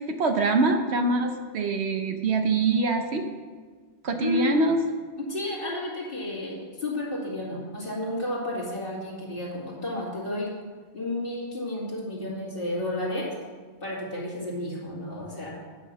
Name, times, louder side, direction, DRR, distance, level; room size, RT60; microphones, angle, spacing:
voice 1, 0.1-3.2 4.0-4.8, right 3 dB, 65° right, 5 dB, 1.0 m, -24 dB
voice 2, 4.2-4.7 5.2-10.5 10.9-13.3 13.8-15.5, left 2 dB, 50° left, -4 dB, 2.4 m, -32 dB
8.5 x 5.9 x 7.2 m, 1.5 s
omnidirectional pair, 1.3 m